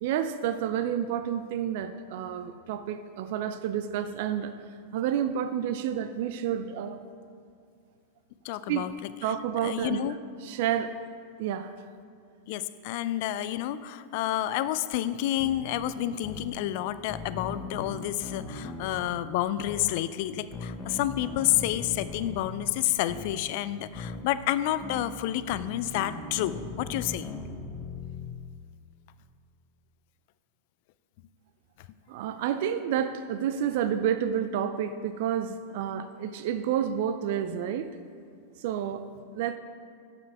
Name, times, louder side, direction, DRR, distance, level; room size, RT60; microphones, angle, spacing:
voice 1, 0.0-4.5 4.9-7.0 8.7-8.8 9.2-10.0 10.4-10.9 11.4-11.7 32.1-37.9 38.6-39.0 39.3-39.6, right 9 dB, 60° right, 10 dB, 0.3 m, -29 dB
voice 2, 8.4-8.9 9.2-9.3 9.6-10.2 12.5-27.3, left 13 dB, 55° left, 14 dB, 0.3 m, -29 dB
sound 1, 15.4-15.6 16.2-16.5 17.1-19.1 19.7-19.9 20.5-22.5 23.1-23.4 24.0-24.2 24.8-25.1 25.5-28.3, left 3 dB, 20° left, 0.9 m, -39 dB
6.8 x 5.9 x 5.8 m, 2.3 s
hypercardioid pair, 95°, 0 cm